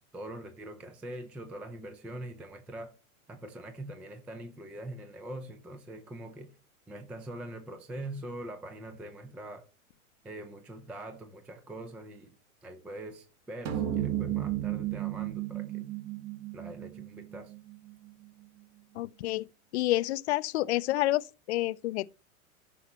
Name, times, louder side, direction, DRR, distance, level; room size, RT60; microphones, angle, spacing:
voice 1, 0.0-2.9 3.3-6.5 6.9-9.7 10.2-12.3 12.6-15.9 16.5-17.5, right 1 dB, 5° right, 0.3 m, -43 dB
sound 1, 13.7-18.3, right 12 dB, 40° right, 1.5 m, -34 dB
voice 2, 19.0-19.4 19.7-22.1, left 16 dB, 50° left, 0.5 m, -29 dB
13.5 x 5.7 x 2.9 m
hypercardioid pair, 105°, 43 cm